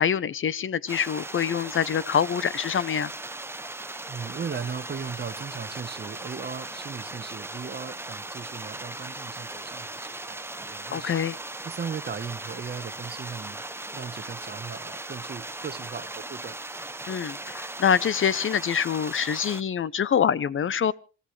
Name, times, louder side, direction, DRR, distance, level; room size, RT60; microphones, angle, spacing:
voice 1, 0.0-3.1 10.9-11.4 17.1-20.9, left 8 dB, 40° left, 0.7 m, -25 dB
sound 1, 0.9-19.6, right 2 dB, 10° right, 0.7 m, -38 dB
voice 2, 4.1-11.2 11.6-13.6 13.9-16.6, right 6 dB, 35° right, 1.1 m, -37 dB
26.5 x 14.5 x 3.3 m
cardioid pair, 90°, 30 cm